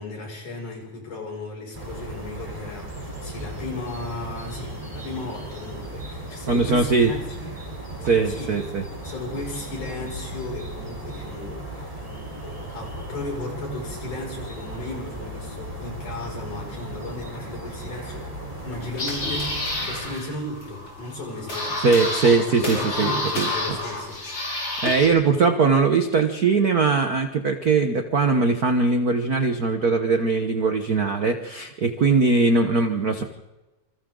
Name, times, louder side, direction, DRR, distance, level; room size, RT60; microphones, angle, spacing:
voice 1, 0.0-7.5 8.3-8.5 9.0-11.9 12.2-18.3 18.6-22.0 22.5-24.2, left 2 dB, 70° left, 0 dB, 7.7 m, -35 dB
sound 1, 1.7-20.2, right 1 dB, 10° right, 3.7 m, -36 dB
voice 2, 6.5-7.1 8.0-8.8 21.8-23.5 24.8-33.2, right 4 dB, 65° right, 6 dB, 0.9 m, -21 dB
sound 2, 18.6-25.1, left 2 dB, 40° left, 6.5 m, -29 dB
27.5 x 26.5 x 3.9 m, 1.1 s
omnidirectional pair, 3.7 m